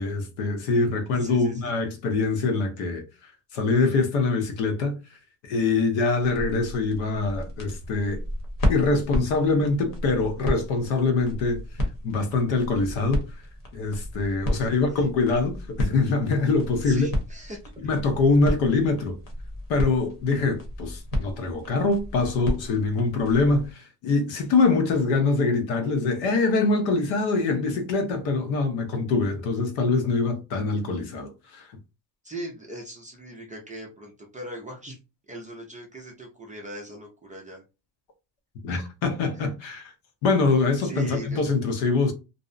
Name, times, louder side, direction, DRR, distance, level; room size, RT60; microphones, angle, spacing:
voice 1, 0.0-3.0 3.5-4.9 5.4-8.2 8.7-11.6 12.0-13.2 13.7-17.1 17.8-19.2 19.7-31.8 38.6-39.9 40.2-42.1, left 3 dB, 75° left, 0.8 m, -24 dB
voice 2, 0.9-1.7 14.5-15.0 16.8-17.6 32.2-35.0 35.3-37.6 38.7-38.8 40.8-41.4, right 1 dB, 20° right, 0.3 m, -40 dB
sound 1, 6.2-23.7, left 1 dB, 45° left, 0.9 m, -33 dB
2.6 x 2.0 x 2.5 m
cardioid pair, 145°, 47 cm